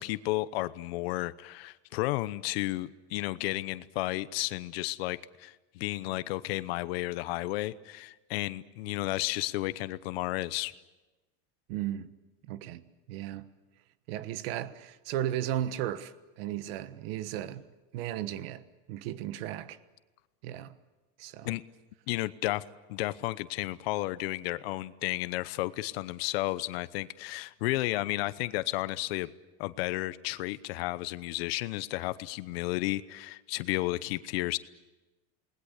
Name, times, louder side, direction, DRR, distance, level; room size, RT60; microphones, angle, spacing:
voice 1, 0.0-10.7 21.4-21.6 22.1-22.6 22.9-29.3 29.6-34.6, left 18 dB, 70° left, 0.9 m, -32 dB
voice 2, 11.7-12.1 12.5-12.8 13.1-13.5 14.1-17.6 17.9-18.6 18.9-19.8 20.4-20.7 21.2-21.6, right 12 dB, 65° right, 1.4 m, -35 dB
28.5 x 20.0 x 8.2 m
supercardioid pair, 160°, 32 cm